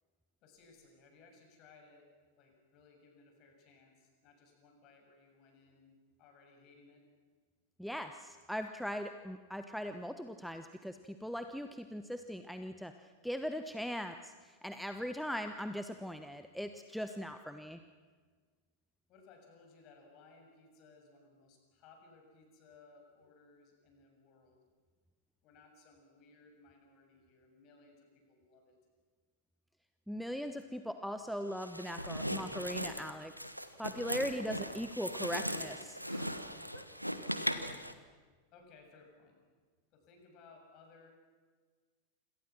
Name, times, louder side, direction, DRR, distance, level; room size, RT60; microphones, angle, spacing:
voice 1, 0.4-2.1 2.4-7.0 19.1-24.6 25.4-28.7 37.2-38.1 38.5-39.4 39.9-41.1, left 4 dB, 40° left, 3 dB, 7.3 m, -61 dB
voice 2, 7.8-12.9 13.2-17.8 30.1-33.3 33.8-36.4 36.7-36.8, equal, ahead, 8 dB, 1.1 m, -40 dB
sound 1, 31.6-37.9, equal, 90° right, 1.4 m, -38 dB
28.0 x 27.0 x 6.1 m, 1.5 s
figure-of-eight pair, 90°, 0 cm